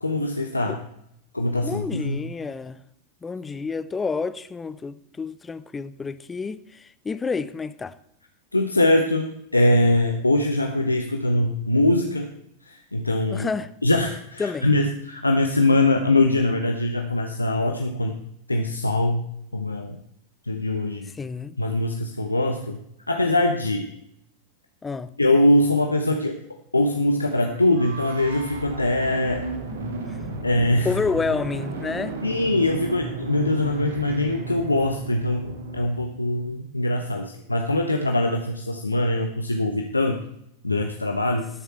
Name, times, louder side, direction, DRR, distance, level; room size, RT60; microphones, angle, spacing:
voice 1, 0.0-0.8 1.3-2.2 8.5-12.3 12.7-13.5 13.8-18.2 18.5-19.3 19.5-20.0 20.5-21.1 21.6-22.8 23.1-23.9 25.2-26.4 26.7-29.5 30.4-30.9 32.2-40.2 40.6-41.5, left 1 dB, 80° left, 1.0 m, -22 dB
voice 2, 1.6-2.8 3.2-8.0 13.3-13.7 14.4-14.7 21.0-21.6 24.8-25.1 30.1-30.2 30.8-32.2, left 4 dB, 15° left, 0.6 m, -29 dB
sound 1, 27.0-35.9, right 2 dB, 60° right, 2.2 m, -34 dB
19.5 x 6.9 x 4.3 m
figure-of-eight pair, 90°, 0 cm